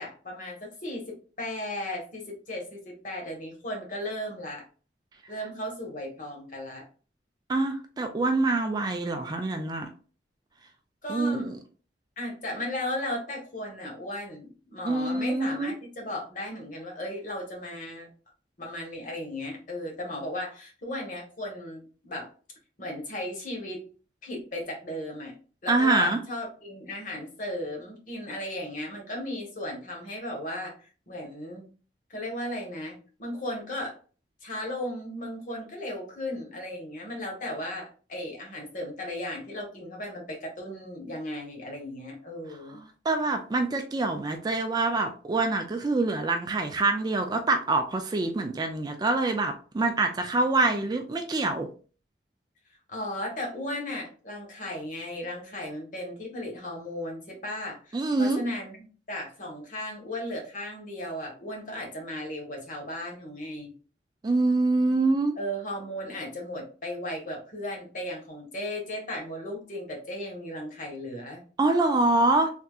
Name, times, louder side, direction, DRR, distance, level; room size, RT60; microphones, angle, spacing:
voice 1, 0.0-4.6 5.3-6.8 11.0-11.5 12.2-18.1 18.6-22.3 22.8-23.8 24.2-25.3 25.6-31.7 32.1-33.9 34.4-42.8 52.9-63.7 65.4-71.4, left 1 dB, 45° left, 0 dB, 1.2 m, -36 dB
voice 2, 7.5-9.9 11.1-11.6 14.9-15.7 25.7-26.2 43.1-51.7 57.9-58.4 64.2-65.3 71.6-72.5, right 2 dB, 25° right, 5 dB, 0.3 m, -25 dB
3.4 x 2.7 x 2.3 m, 0.38 s
head